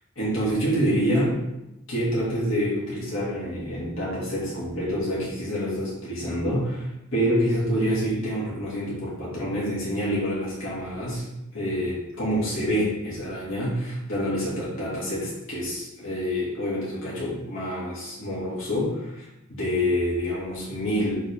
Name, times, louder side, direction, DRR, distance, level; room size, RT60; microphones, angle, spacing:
voice 1, 0.2-1.3 1.9-11.2 11.5-21.2, equal, 65° left, -7 dB, 2.0 m, -27 dB
7.6 x 3.7 x 3.5 m, 0.92 s
head